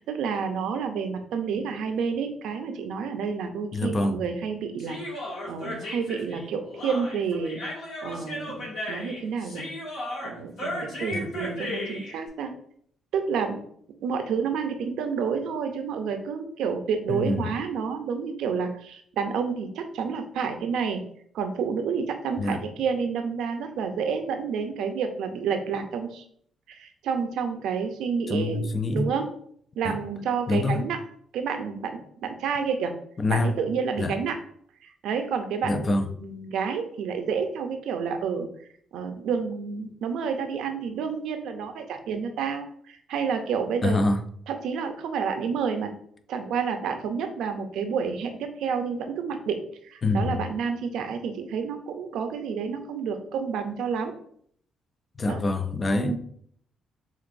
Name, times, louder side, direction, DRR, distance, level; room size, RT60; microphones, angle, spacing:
voice 1, 0.0-7.6 8.0-9.6 10.2-12.5 13.1-13.6 14.0-21.0 21.3-26.2 26.7-28.7 28.9-29.2 29.8-31.0 31.3-32.9 33.3-34.4 34.8-38.5 38.9-44.0 44.5-45.9 46.3-49.6 49.8-54.2 55.3-55.4 55.9-56.2, right 6 dB, 80° right, 0.6 m, -29 dB
voice 2, 3.7-4.2 11.1-11.3 17.1-17.5 22.4-22.6 28.3-29.1 29.8-30.0 30.5-30.8 33.2-33.6 34.0-34.1 35.6-36.1 43.8-44.2 50.0-50.5 55.2-56.2, left 2 dB, 35° left, 0.5 m, -25 dB
Human voice, 4.8-12.1, left 1 dB, 70° left, 1.8 m, -35 dB
6.9 x 2.5 x 2.6 m
cardioid pair, 90°, 0 cm